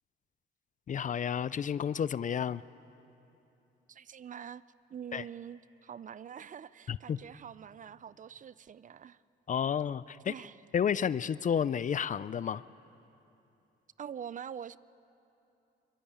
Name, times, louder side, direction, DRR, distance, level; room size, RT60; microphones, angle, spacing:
voice 1, 0.9-2.6 5.1-5.2 6.9-7.2 9.5-10.3 10.7-12.6, left 8 dB, 40° left, 18 dB, 0.5 m, -31 dB
voice 2, 3.9-4.6 4.9-9.2 10.3-10.5 14.0-14.8, right 8 dB, 40° right, 18 dB, 0.5 m, -45 dB
23.0 x 22.0 x 8.8 m, 2.9 s
cardioid pair, 90°, 20 cm